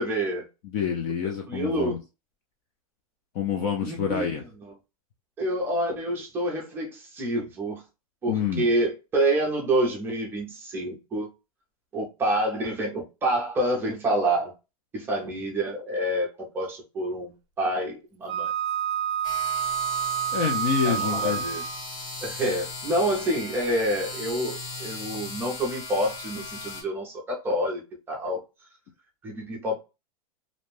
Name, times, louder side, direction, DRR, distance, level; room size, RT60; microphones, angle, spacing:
voice 1, 0.0-0.5 1.5-1.9 3.8-4.2 5.4-7.8 8.2-11.3 11.9-14.5 14.9-18.5 20.8-21.6 22.2-27.8 28.1-28.4 29.2-29.8, right 1 dB, 10° right, 0.6 m, -27 dB
voice 2, 0.6-2.0 3.3-4.4 8.3-8.7 20.3-21.4, left 7 dB, 30° left, 0.4 m, -27 dB
Wind instrument woodwind instrument, 18.3-21.9, right 9 dB, 55° right, 0.5 m, -28 dB
sound 1, 19.2-26.8, left 2 dB, 60° left, 1.4 m, -37 dB
2.6 x 2.1 x 3.2 m
supercardioid pair, 170°, 19 cm